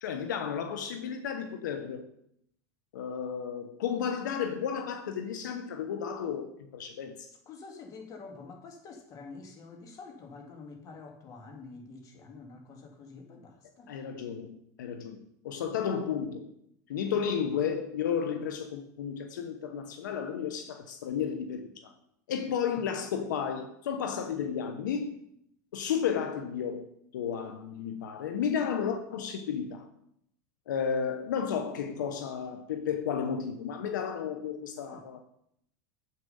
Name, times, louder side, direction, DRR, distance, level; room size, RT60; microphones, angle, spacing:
voice 1, 0.0-2.1 2.9-7.3 13.9-16.5 16.9-21.9 22.3-25.2 25.7-26.9 27.1-29.9 30.7-35.2, left 7 dB, 85° left, 0.9 m, -33 dB
voice 2, 7.5-14.0 17.1-17.2 34.9-35.0, left 4 dB, 35° left, 2.2 m, -47 dB
7.6 x 6.8 x 5.5 m
supercardioid pair, 120°, 10 cm